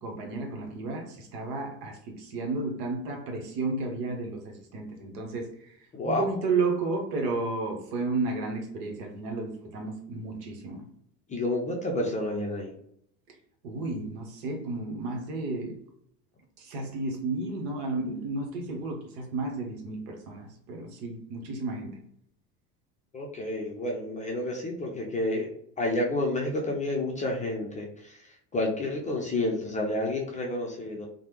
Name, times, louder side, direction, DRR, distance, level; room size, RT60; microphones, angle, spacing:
voice 1, 0.0-5.8 6.0-10.8 13.6-15.8 16.6-22.0, right 3 dB, 70° right, 3 dB, 1.0 m, -32 dB
voice 2, 5.9-6.2 11.3-12.7 23.1-25.5 25.8-27.9 28.5-31.1, left 1 dB, 15° left, -2 dB, 0.4 m, -29 dB
3.2 x 2.1 x 2.9 m, 0.69 s
hypercardioid pair, 80°, 49 cm